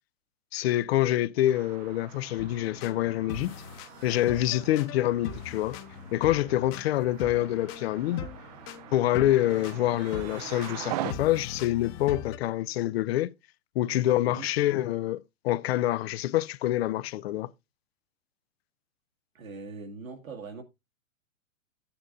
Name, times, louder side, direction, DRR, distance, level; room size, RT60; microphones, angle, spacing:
voice 1, 0.5-3.5 4.0-5.8 6.1-8.3 8.9-13.3 13.8-17.5, left 14 dB, 50° left, 0.5 m, -26 dB
sound 1, 1.4-11.1, right 13 dB, 35° right, 0.4 m, -43 dB
sound 2, 2.4-12.4, left 6 dB, 30° left, 0.9 m, -41 dB
sound 3, 3.7-9.1 9.4-11.8, right 9 dB, 55° right, 1.6 m, -57 dB
voice 2, 19.3-20.6, right 4 dB, 85° right, 2.0 m, -41 dB
12.5 x 8.7 x 2.5 m
hypercardioid pair, 120°, 40 cm